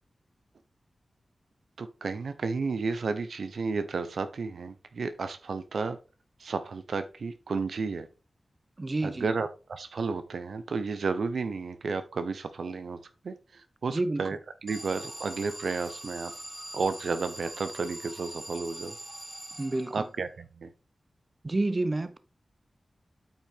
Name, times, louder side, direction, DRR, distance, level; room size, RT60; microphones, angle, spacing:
voice 1, 1.8-6.0 6.4-8.1 9.0-13.0 13.2-16.3 16.7-19.0 19.9-20.7, right 4 dB, 85° right, 0.8 m, -32 dB
voice 2, 8.8-9.3 13.9-14.2 19.6-20.0 21.4-22.2, right 2 dB, 30° right, 0.6 m, -29 dB
Alarm, 14.7-20.2, right 1 dB, 15° right, 1.3 m, -43 dB
8.9 x 5.7 x 3.6 m
wide cardioid pair, 105°, 0 cm